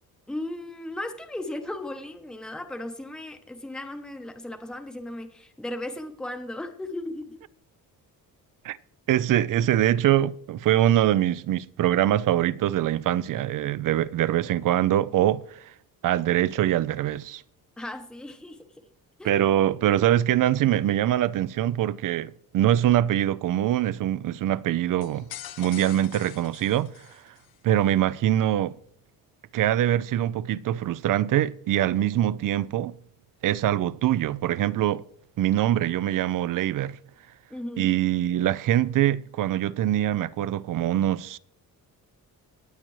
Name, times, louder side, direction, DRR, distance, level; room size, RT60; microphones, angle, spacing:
voice 1, 0.3-7.4 9.8-9.9 10.9-11.0 17.8-18.8 19.2-19.4 37.5-37.9, left 1 dB, ahead, 0.8 m, -36 dB
voice 2, 9.1-15.6 16.0-17.4 19.2-25.3 25.6-26.9 27.6-28.7 29.5-32.9 33.4-35.0 35.4-37.0 37.8-41.4, right 12 dB, 60° right, 0.5 m, -23 dB
sound 1, 25.0-27.5, left 12 dB, 75° left, 0.7 m, -43 dB
24.0 x 8.8 x 3.1 m
cardioid pair, 175°, 36 cm